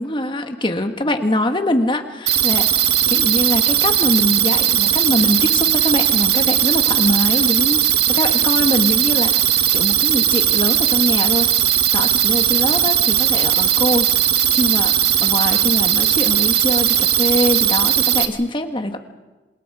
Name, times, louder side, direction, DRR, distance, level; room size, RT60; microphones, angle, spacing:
voice 1, 0.0-9.4 9.7-11.5 11.9-14.1 14.5-14.9 15.2-19.0, left 1 dB, 30° left, 6 dB, 1.6 m, -23 dB
sound 1, 2.3-18.3, right 11 dB, 65° right, 1.5 m, -17 dB
27.0 x 26.5 x 4.9 m, 1.2 s
head